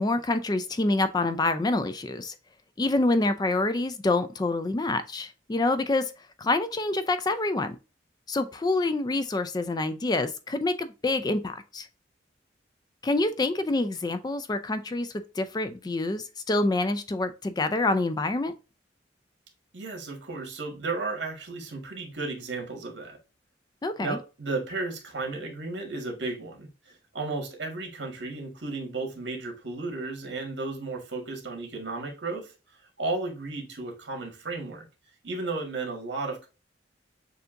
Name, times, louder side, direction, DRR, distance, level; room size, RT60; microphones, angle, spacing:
voice 1, 0.0-2.3 2.8-6.0 6.4-7.8 8.3-11.9 13.0-15.1 15.4-18.5 23.8-24.2, left 2 dB, 20° left, 0.3 m, -26 dB
voice 2, 19.7-23.2 24.0-32.5 33.0-34.8 35.2-36.5, right 3 dB, 65° right, 1.6 m, -34 dB
6.7 x 2.8 x 2.5 m
head